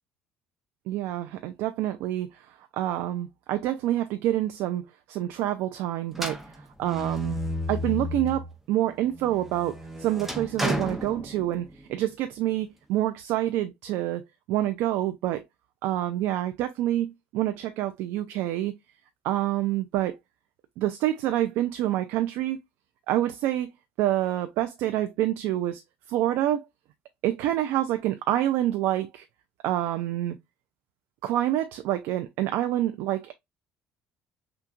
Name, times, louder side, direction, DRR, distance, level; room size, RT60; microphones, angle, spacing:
voice 1, 0.9-7.4 7.7-14.2 14.5-15.4 15.8-18.7 19.2-20.2 20.8-22.6 23.1-23.7 24.0-25.8 26.1-26.6 27.2-29.2 29.6-30.4 31.2-33.3, right 13 dB, 75° right, 0.4 m, -27 dB
sound 1, 6.1-8.5 9.0-11.8, equal, 5° right, 0.8 m, -32 dB
5.7 x 2.3 x 2.5 m
supercardioid pair, 95°, 4 cm